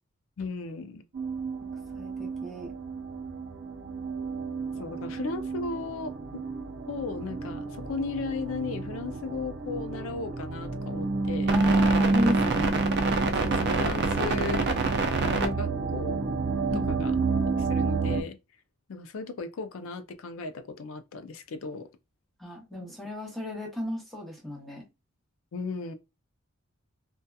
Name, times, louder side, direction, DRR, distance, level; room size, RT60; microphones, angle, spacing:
voice 1, 0.4-1.0 4.8-6.4 6.9-11.5 13.4-14.7 15.2-16.2 16.7-17.1 17.6-18.4 18.9-21.9 22.7-22.9 25.5-25.9, left 4 dB, 65° left, 0.4 m, -36 dB
sound 1, 1.1-18.2, right 3 dB, 50° right, 0.4 m, -28 dB
voice 2, 1.9-2.7 11.5-12.7 16.7-17.1 22.4-24.8, left 1 dB, ahead, 0.8 m, -34 dB
2.7 x 2.2 x 2.2 m
head